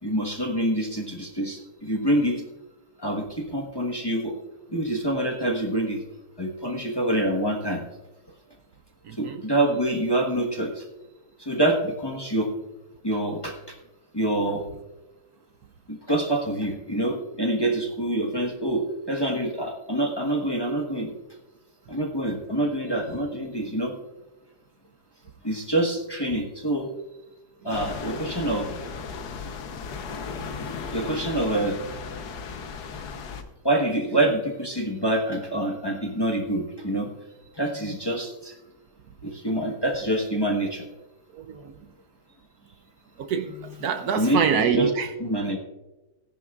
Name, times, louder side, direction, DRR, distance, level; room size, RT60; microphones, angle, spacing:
voice 1, 0.0-2.4 3.0-4.4 4.7-6.0 6.4-7.8 9.2-10.9 11.4-12.5 13.0-13.8 14.1-14.6 15.9-21.1 21.9-23.9 25.4-26.9 27.6-28.7 30.9-31.8 33.6-37.1 37.5-38.6 39.2-40.8 44.2-44.9 45.2-45.6, right 1 dB, 15° left, 1.1 m, -26 dB
voice 2, 9.0-9.4 41.3-41.8 43.2-45.1, right 7 dB, 70° right, 1.1 m, -26 dB
sound 1, 27.7-33.4, left 5 dB, 70° left, 1.4 m, -35 dB
17.5 x 10.5 x 2.4 m
omnidirectional pair, 1.8 m